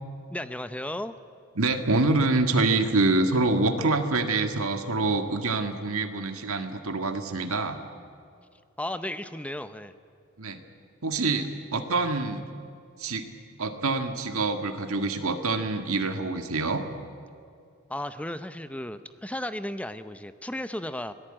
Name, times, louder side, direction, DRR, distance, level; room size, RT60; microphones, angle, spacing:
voice 1, 0.3-1.1 8.8-9.9 17.9-21.1, left 1 dB, 5° left, 12 dB, 0.6 m, -34 dB
voice 2, 1.6-7.8 10.4-10.6 11.0-12.4 13.0-13.3 13.6-16.8, right 3 dB, 75° right, 6 dB, 1.8 m, -26 dB
26.0 x 18.0 x 8.9 m, 2.3 s
head